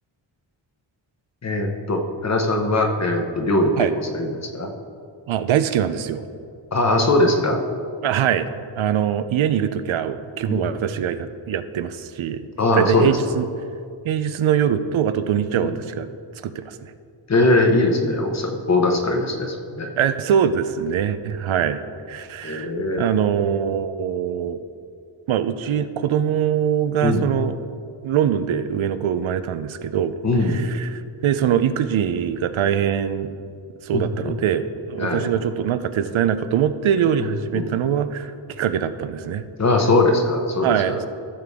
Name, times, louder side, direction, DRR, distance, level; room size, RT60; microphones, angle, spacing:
voice 1, 1.4-3.9 4.1-4.7 6.7-7.6 10.5-10.8 12.6-13.2 15.6-15.8 17.3-19.9 22.4-23.1 27.0-27.3 30.2-30.7 33.9-34.4 35.0-35.3 37.2-37.7 39.6-41.0, left 2 dB, 35° left, 3 dB, 0.9 m, -21 dB
voice 2, 5.3-6.2 8.0-8.5 8.8-12.5 12.7-13.5 14.0-16.1 16.4-16.9 20.0-21.8 22.1-22.7 23.0-24.6 25.3-27.6 28.0-30.1 30.5-33.3 33.8-39.4 40.6-41.0, right 9 dB, 75° right, 11 dB, 0.6 m, -23 dB
15.0 x 6.7 x 3.6 m, 2.4 s
wide cardioid pair, 160°, 48 cm